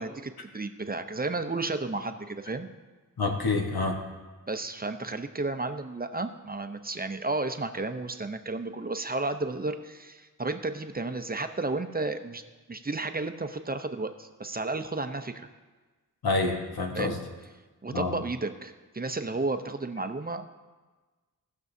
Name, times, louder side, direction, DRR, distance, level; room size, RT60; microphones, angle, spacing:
voice 1, 0.0-2.7 4.5-12.4 12.7-15.5 16.9-17.1 17.8-20.4, right 3 dB, 25° right, 8 dB, 0.7 m, -32 dB
voice 2, 3.2-4.0 16.2-17.2 17.9-18.1, left 3 dB, 90° left, 2 dB, 1.3 m, -27 dB
18.0 x 6.2 x 2.7 m, 1.3 s
cardioid pair, 50°, 36 cm